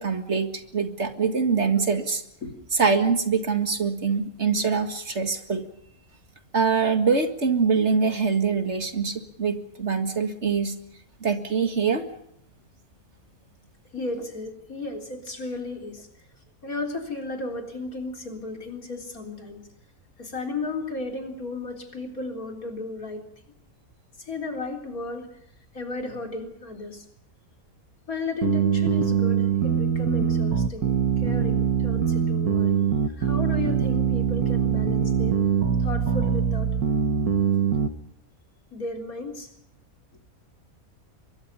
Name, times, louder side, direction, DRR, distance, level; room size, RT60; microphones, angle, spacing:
voice 1, 0.0-2.2 2.8-5.6 6.5-10.7 11.2-12.1, right 5 dB, 50° right, 7 dB, 2.2 m, -24 dB
voice 2, 13.9-16.1 16.6-19.7 20.2-23.2 24.2-25.3 25.7-27.1 28.1-30.9 31.2-35.4 35.8-36.7 38.7-39.5, left 3 dB, 75° left, 3 dB, 4.3 m, -34 dB
sound 1, 28.4-37.9, right 7 dB, 90° right, 1.9 m, -23 dB
24.0 x 22.5 x 5.5 m, 0.76 s
omnidirectional pair, 1.5 m